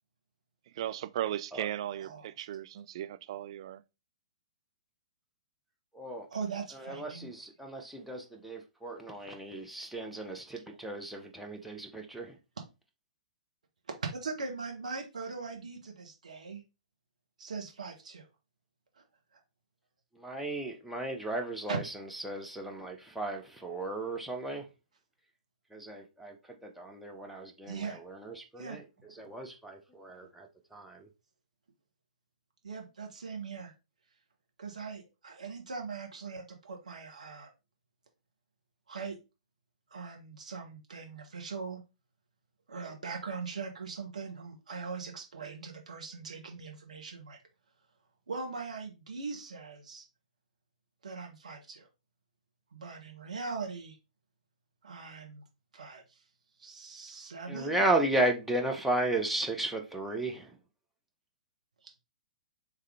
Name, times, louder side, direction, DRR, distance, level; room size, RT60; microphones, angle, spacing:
voice 1, 0.8-3.8, right 12 dB, 45° right, 0.3 m, -36 dB
voice 2, 2.0-2.3 6.3-7.3 14.1-16.6 17.4-18.3 21.7-21.8 27.7-28.0 28.6-28.8 32.6-33.7 34.6-37.5 38.9-39.2 39.9-41.8 42.7-47.4 48.3-50.0 51.0-51.9 52.7-54.0 54.8-55.4 55.7-56.0 56.6-57.8, right 4 dB, 65° right, 1.1 m, -40 dB
voice 3, 5.9-6.3 6.7-12.4 20.1-24.7 25.7-31.1 57.5-60.6, right 1 dB, ahead, 0.7 m, -34 dB
3.7 x 3.2 x 3.3 m
figure-of-eight pair, 115°, 4 cm